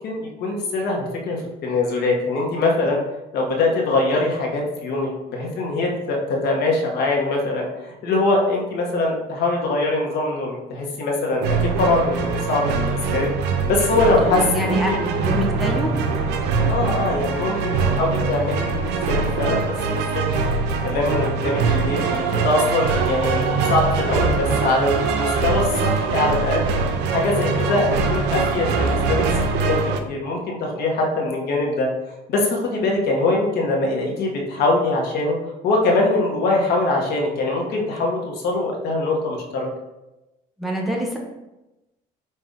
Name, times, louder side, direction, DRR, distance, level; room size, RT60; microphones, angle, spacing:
voice 1, 0.0-3.0 3.3-13.3 13.7-14.8 16.6-19.6 19.9-20.2 20.8-26.6 27.1-29.2 29.6-31.9 32.3-35.4 35.6-39.7, left 2 dB, 75° left, 0 dB, 1.1 m, -22 dB
sound 1, 11.4-30.0, right 4 dB, 90° right, 0.5 m, -23 dB
voice 2, 14.0-14.9 15.2-15.9 40.6-41.2, right 1 dB, ahead, -1 dB, 0.8 m, -25 dB
5.5 x 2.6 x 3.6 m, 0.99 s
cardioid pair, 110°, 17 cm